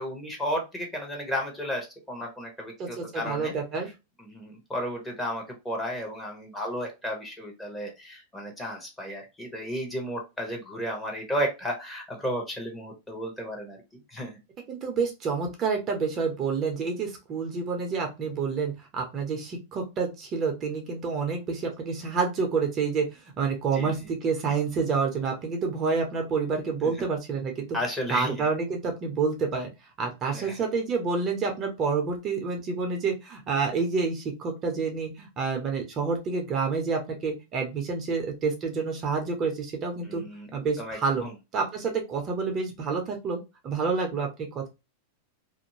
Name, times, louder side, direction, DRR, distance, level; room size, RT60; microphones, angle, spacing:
voice 1, 0.0-3.5 4.2-14.3 23.7-23.9 26.8-26.9 27.7-28.4 30.3-30.6 40.1-40.5 40.8-41.3, equal, 10° left, 1 dB, 1.1 m, -33 dB
voice 2, 2.8-3.9 14.7-27.7 28.1-29.7 30.0-40.2 40.5-41.2 41.5-44.7, right 5 dB, 35° right, 3 dB, 0.7 m, -28 dB
2.6 x 2.0 x 3.0 m, 0.25 s
hypercardioid pair, 120°, 0 cm